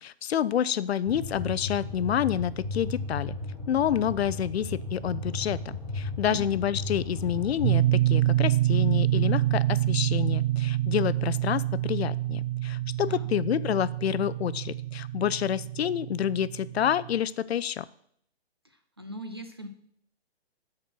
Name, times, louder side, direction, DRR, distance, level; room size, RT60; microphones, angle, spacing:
voice 1, 0.0-3.4 3.7-5.6 5.9-17.8, left 9 dB, 75° left, 17 dB, 0.5 m, -28 dB
sound 1, 1.0-7.8, left 2 dB, 5° right, 3.6 m, -35 dB
voice 2, 6.2-6.6 13.1-13.3 18.6-19.7, right 1 dB, 25° right, 6 dB, 0.3 m, -40 dB
sound 2, 7.6-17.2, right 14 dB, 75° right, 0.6 m, -27 dB
9.7 x 4.4 x 6.1 m, 0.68 s
hypercardioid pair, 170°, 32 cm